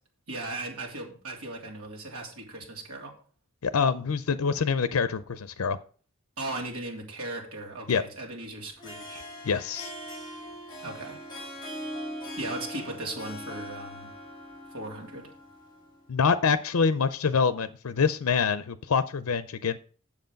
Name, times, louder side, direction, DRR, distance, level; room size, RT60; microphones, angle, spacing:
voice 1, 0.3-3.1 6.4-9.2 10.8-11.2 12.4-14.1 14.7-15.3, right 2 dB, 85° right, 0 dB, 3.1 m, -37 dB
voice 2, 3.6-5.8 7.9-8.0 9.4-9.9 16.1-19.8, left 5 dB, 80° left, 13 dB, 0.5 m, -25 dB
Harp, 8.6-16.0, equal, 20° left, 2.5 m, -41 dB
7.9 x 7.4 x 5.2 m, 0.42 s
head